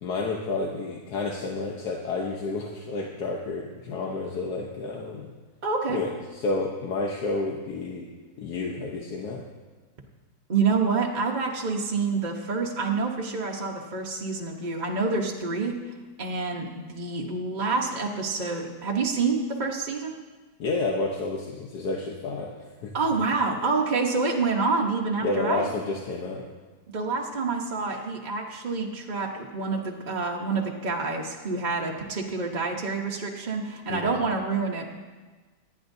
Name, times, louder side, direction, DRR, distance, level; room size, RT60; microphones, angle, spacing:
voice 1, 0.0-5.3 5.9-8.1 8.4-9.4 20.6-22.9 25.2-26.5 33.9-34.1, left 3 dB, 85° left, 0 dB, 1.6 m, -30 dB
voice 2, 5.6-6.0 10.5-15.8 16.2-20.1 22.9-25.7 26.9-34.9, right 4 dB, 35° right, -1 dB, 1.0 m, -27 dB
26.0 x 9.7 x 2.7 m, 1.3 s
omnidirectional pair, 1.7 m